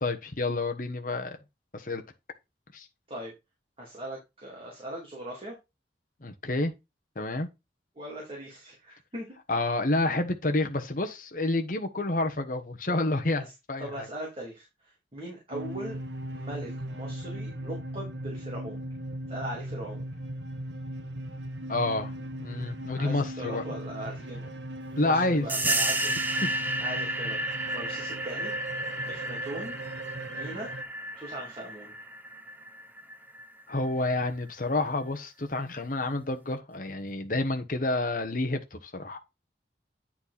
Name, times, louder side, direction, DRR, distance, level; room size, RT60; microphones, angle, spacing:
voice 1, 0.0-1.4 1.7-2.0 2.7-2.9 6.2-6.7 7.1-7.5 9.5-14.1 21.7-22.1 22.4-23.6 25.0-25.4 26.4-26.5 33.7-39.2, left 2 dB, 50° left, 1.2 m, -29 dB
voice 2, 3.8-5.5 7.9-9.3 13.4-13.5 13.8-16.0 16.3-18.8 19.3-20.1 22.9-24.4 25.0-26.1 26.8-28.5 29.1-29.8 30.3-30.7 31.2-31.9, right 1 dB, 30° right, 2.9 m, -40 dB
sound 1, 15.5-30.8, right 1 dB, 85° right, 1.0 m, -38 dB
sound 2, 25.5-33.8, right 1 dB, 10° right, 0.8 m, -32 dB
10.0 x 4.5 x 4.3 m
head